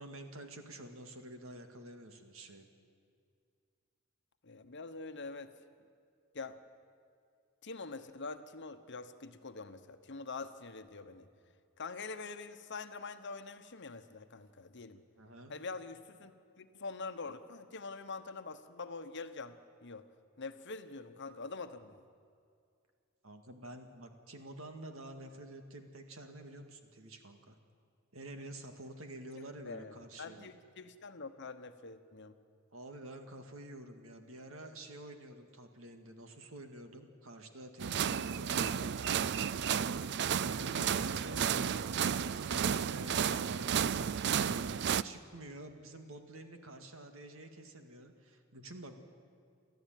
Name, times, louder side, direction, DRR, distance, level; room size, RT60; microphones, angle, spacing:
voice 1, 0.0-2.7 15.2-15.5 23.2-27.6 28.1-30.5 32.7-40.1 40.5-42.0 42.4-49.0, right 1 dB, 75° right, 6 dB, 2.1 m, -49 dB
voice 2, 4.4-5.5 6.3-6.6 7.6-11.3 11.8-15.0 15.5-20.1 20.4-22.0 29.3-32.3, left 4 dB, 60° left, 10 dB, 1.1 m, -45 dB
sound 1, 37.8-45.0, right 8 dB, 55° right, 0.5 m, -32 dB
29.5 x 13.0 x 9.2 m, 2.3 s
head